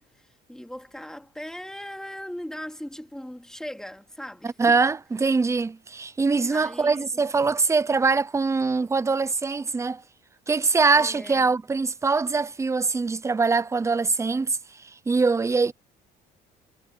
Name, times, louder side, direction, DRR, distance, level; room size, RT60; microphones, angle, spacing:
voice 1, 0.0-4.8 6.5-7.2 10.9-11.4, equal, 5° left, 2.9 m, -39 dB
voice 2, 4.4-10.0 10.5-15.7, right 4 dB, 15° right, 0.6 m, -23 dB
cardioid pair, 110°, 17 cm